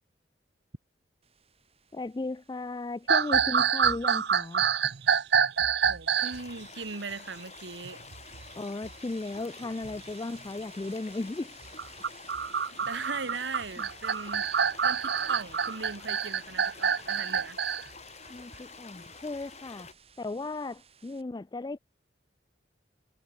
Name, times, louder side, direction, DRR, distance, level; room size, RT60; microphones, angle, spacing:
sound 1, 1.2-21.2, right 5 dB, 35° right, 6.6 m, -57 dB
voice 1, 1.9-4.6 8.6-11.6 13.8-13.9 18.3-19.9 20.2-21.8, left 2 dB, 20° left, 0.3 m, -36 dB
sound 2, 3.1-6.4 7.8-8.4 8.8-8.9 9.6-10.0 11.6-17.8, right 7 dB, 60° right, 0.7 m, -27 dB
voice 2, 5.9-8.0 12.8-14.5 14.8-17.6, right 4 dB, 85° right, 1.8 m, -38 dB
sound 3, 6.2-19.9, left 5 dB, 35° left, 6.1 m, -49 dB
head